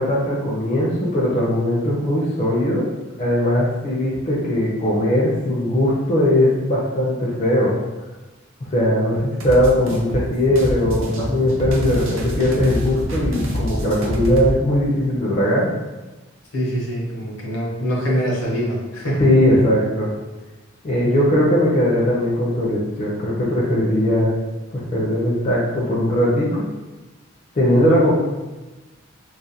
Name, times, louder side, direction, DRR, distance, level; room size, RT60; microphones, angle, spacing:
voice 1, 0.0-2.9 3.2-7.7 8.6-15.7 19.2-20.1 20.8-24.4 24.7-26.6 27.5-28.1, left 1 dB, 35° left, -5 dB, 0.4 m, -19 dB
sound 1, 9.4-14.6, equal, 75° right, 0.5 m, -26 dB
voice 2, 16.5-19.2, equal, 75° left, -4 dB, 0.7 m, -24 dB
2.4 x 2.1 x 2.7 m, 1.1 s
head